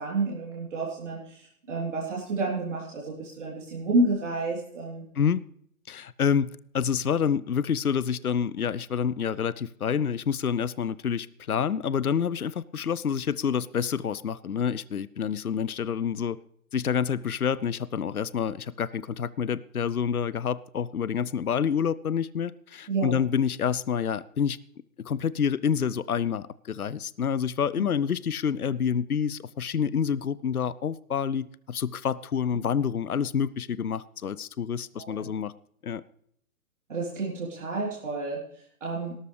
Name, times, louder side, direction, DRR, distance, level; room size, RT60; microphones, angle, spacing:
voice 1, 0.0-5.0 22.9-23.2 35.0-35.3 36.9-38.4 38.8-39.2, right 2 dB, 55° right, -4 dB, 3.6 m, -30 dB
voice 2, 5.9-16.4 16.7-24.6 25.0-35.5 35.8-36.0, left 7 dB, 75° left, 19 dB, 0.7 m, -28 dB
18.0 x 13.0 x 3.3 m, 0.66 s
figure-of-eight pair, 135°, 44 cm